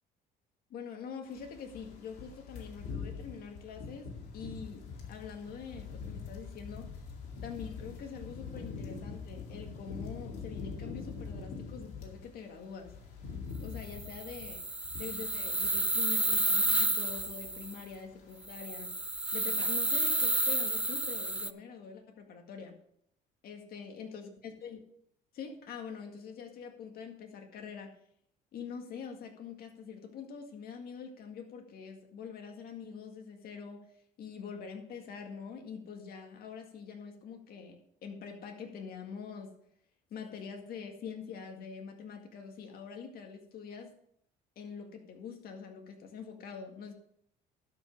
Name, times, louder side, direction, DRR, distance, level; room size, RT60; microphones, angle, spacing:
voice 1, 0.7-4.8 5.1-7.0 7.4-13.0 13.6-14.7 15.0-18.9 19.3-22.8 23.4-24.8 25.3-28.0 28.5-33.9 34.2-39.5 40.1-44.0 44.6-46.9, left 6 dB, 65° left, 4 dB, 1.9 m, -45 dB
sound 1, 1.3-12.3 12.6-16.0 16.3-16.5 16.9-17.7 17.9-18.1, left 5 dB, 90° left, 2.3 m, -44 dB
sound 2, 13.8-17.8 18.5-21.5, right 2 dB, 5° right, 0.4 m, -31 dB
12.0 x 5.5 x 5.4 m, 0.69 s
cardioid pair, 110°, 17 cm